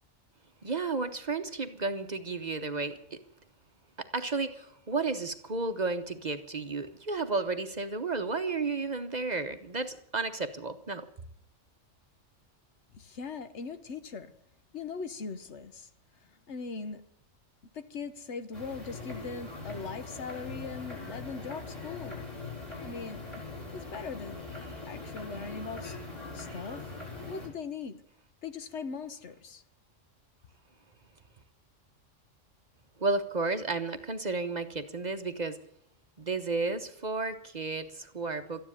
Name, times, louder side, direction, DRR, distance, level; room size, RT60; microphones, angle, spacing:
voice 1, 0.6-3.2 4.0-11.0 33.0-35.6 36.2-38.6, right 3 dB, 40° right, 9 dB, 0.9 m, -32 dB
voice 2, 12.9-14.3 14.7-15.9 16.2-17.0 17.6-22.2 22.8-24.4 24.9-26.0 26.3-26.9 27.2-28.0 28.4-29.6, left 5 dB, 65° left, 11 dB, 1.3 m, -40 dB
sound 1, 18.5-27.5, left 3 dB, 35° left, 4.8 m, -41 dB
13.5 x 10.0 x 9.8 m, 0.68 s
omnidirectional pair, 1.3 m